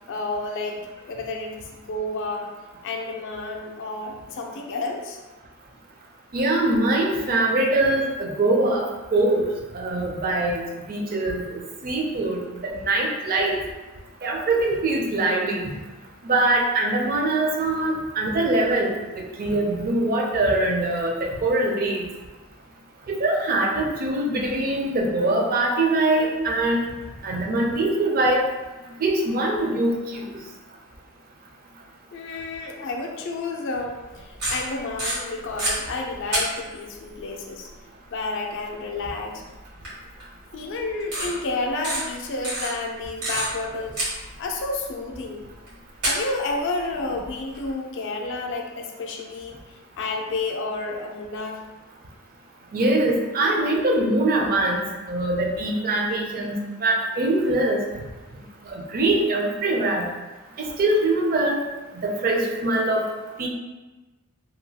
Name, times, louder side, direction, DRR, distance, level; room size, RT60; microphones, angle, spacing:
voice 1, 0.1-2.5 2.8-5.2 32.1-37.7 38.1-39.4 40.5-44.0 44.4-45.4 46.0-49.6 50.0-51.6, left 3 dB, 55° left, 1 dB, 0.4 m, -30 dB
voice 2, 6.3-8.8 9.1-9.4 9.7-11.4 11.8-13.6 14.2-15.7 16.2-22.1 23.1-26.8 27.2-28.4 29.0-30.4 52.7-57.8 58.7-60.1 60.6-61.6 62.0-63.1 63.4-63.5, right 2 dB, 40° right, 0 dB, 0.4 m, -23 dB
sound 1, 34.2-35.7 36.3-36.9 38.7-38.8 39.8-39.9 40.2-40.3 41.0-41.3 41.8-42.0 42.4-43.7 44.0-44.6 45.7-45.8 46.0-47.7, right 1 dB, 90° right, 1.4 m, -27 dB
2.8 x 2.2 x 2.7 m, 1.2 s
head